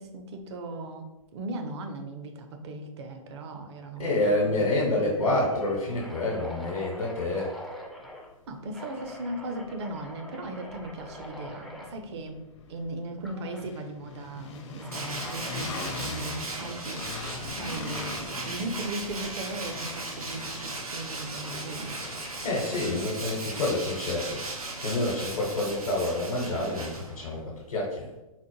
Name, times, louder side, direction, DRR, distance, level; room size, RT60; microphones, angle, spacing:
voice 1, 0.0-5.3 8.5-22.0, right 2 dB, 50° right, 5 dB, 0.5 m, -38 dB
sound 1, 3.8-4.1 4.4-4.5 5.0-8.3 8.7-11.9 13.2-13.7 14.8-15.7, left 1 dB, ahead, 0.3 m, -44 dB
voice 2, 4.0-7.5 22.4-28.0, left 2 dB, 75° left, -3 dB, 0.9 m, -28 dB
sound 2, 8.1-8.2 8.6-24.6, left 4 dB, 55° left, 0.6 m, -43 dB
Tools, 14.9-27.4, right 2 dB, 85° right, 0.7 m, -37 dB
4.1 x 2.1 x 3.0 m, 1.0 s
figure-of-eight pair, 120°, 18 cm